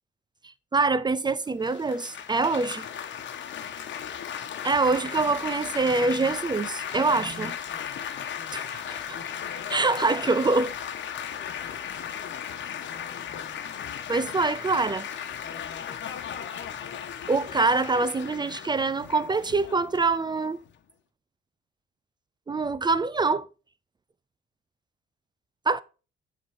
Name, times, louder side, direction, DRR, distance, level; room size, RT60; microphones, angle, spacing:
voice 1, 0.7-2.9 4.6-7.6 8.5-8.8 9.1-9.2 9.7-10.7 14.1-15.1 17.3-20.6 22.5-23.4 25.7-25.8, right 3 dB, 20° right, 0.4 m, -25 dB
Laughter / Applause / Chatter, 1.6-20.8, left 8 dB, 65° left, 1.2 m, -36 dB
11.0 x 3.9 x 5.0 m
cardioid pair, 90°, 20 cm